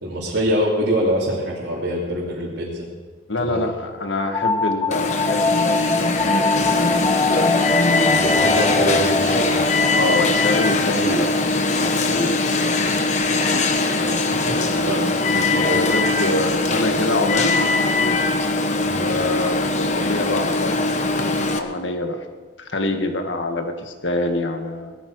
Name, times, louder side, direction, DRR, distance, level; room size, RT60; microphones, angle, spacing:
voice 1, 0.0-2.9 3.4-3.7 8.0-9.6 14.3-15.1 15.7-15.8 18.8-19.1, equal, 70° right, -6 dB, 3.1 m, -24 dB
voice 2, 3.3-6.2 10.0-11.3 11.8-12.4 14.0-17.6 18.9-22.2 22.6-25.0, left 2 dB, 80° left, 5 dB, 1.7 m, -26 dB
sound 1, 4.3-13.7, left 3 dB, 20° left, 0.4 m, -25 dB
Alarm, 4.9-21.6, left 3 dB, 40° left, 1.0 m, -21 dB
19.0 x 14.0 x 4.8 m, 1.4 s
head